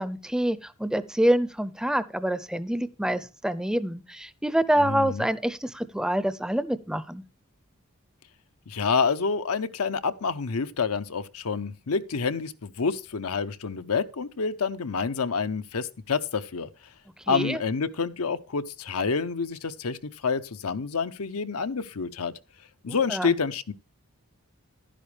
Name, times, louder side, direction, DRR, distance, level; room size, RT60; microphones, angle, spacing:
voice 1, 0.0-7.2 17.3-17.6 22.9-23.3, right 1 dB, 5° right, 0.5 m, -26 dB
voice 2, 4.8-5.3 8.7-16.7 17.3-20.0 20.2-22.3 22.8-23.7, left 5 dB, 85° left, 0.8 m, -28 dB
11.5 x 10.0 x 3.3 m
head